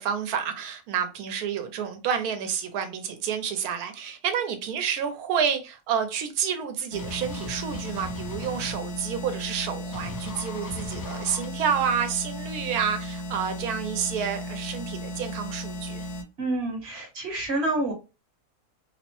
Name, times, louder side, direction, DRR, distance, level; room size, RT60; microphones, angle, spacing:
voice 1, 0.0-16.1, right 7 dB, 85° right, 1.1 m, -29 dB
sound 1, 6.9-16.2, left 1 dB, 60° left, 1.0 m, -35 dB
sound 2, 7.0-8.7 9.9-11.5, left 1 dB, 25° left, 0.4 m, -40 dB
voice 2, 16.4-17.9, right 2 dB, 50° right, 1.1 m, -28 dB
2.7 x 2.0 x 2.9 m
omnidirectional pair, 1.6 m